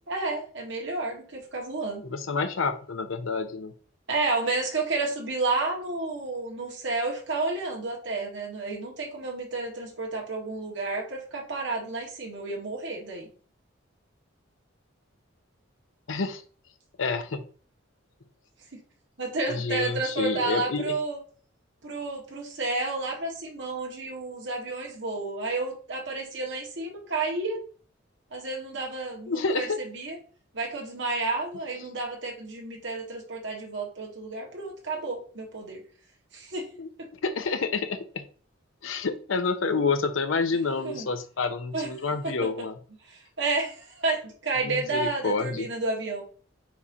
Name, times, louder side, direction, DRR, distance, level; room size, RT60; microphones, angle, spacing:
voice 1, 0.1-2.0 4.1-13.3 19.2-21.2 21.8-27.6 28.3-30.2 30.5-35.8 36.3-36.7 40.8-41.1 41.7-41.9 42.2-42.3 43.1-46.2, right 3 dB, 60° right, -1 dB, 1.8 m, -31 dB
voice 2, 2.0-3.7 16.1-16.4 17.0-17.5 19.5-21.0 29.3-29.8 36.8-36.9 37.2-38.2 38.8-42.7 44.6-45.7, left 4 dB, 80° left, 8 dB, 0.7 m, -28 dB
4.7 x 4.2 x 5.0 m, 0.42 s
head